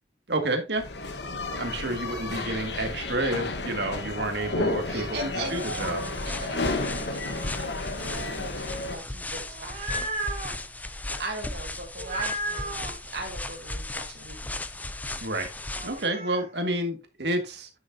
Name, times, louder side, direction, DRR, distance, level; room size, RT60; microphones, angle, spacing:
voice 1, 0.3-0.8 1.6-6.0 15.2-15.5 15.8-17.7, right 1 dB, 80° right, 5 dB, 2.0 m, -29 dB
sound 1, 0.8-9.0, left 2 dB, 80° left, 1.2 m, -32 dB
voice 2, 4.5-5.7 6.3-10.1 11.1-14.6, right 2 dB, 60° right, 1 dB, 1.4 m, -39 dB
sound 2, 5.4-16.1, left 2 dB, 10° left, 0.5 m, -36 dB
sound 3, 9.4-10.6 12.0-12.9 15.7-16.5, right 2 dB, 40° right, 2.6 m, -34 dB
9.5 x 6.3 x 2.7 m, 0.26 s
head